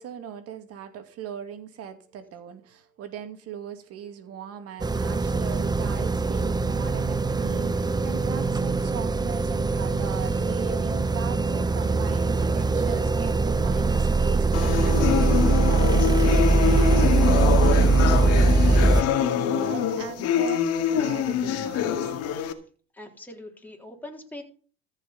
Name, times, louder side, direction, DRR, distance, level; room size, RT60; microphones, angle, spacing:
voice 1, 0.0-22.1, right 9 dB, 55° right, 2.5 m, -39 dB
sound 1, 4.8-19.0, right 3 dB, 15° right, 0.8 m, -22 dB
sound 2, 14.5-22.5, left 8 dB, 55° left, 2.1 m, -25 dB
voice 2, 22.9-24.4, left 1 dB, 5° left, 3.7 m, -42 dB
14.5 x 6.0 x 7.2 m
supercardioid pair, 90°, 30 cm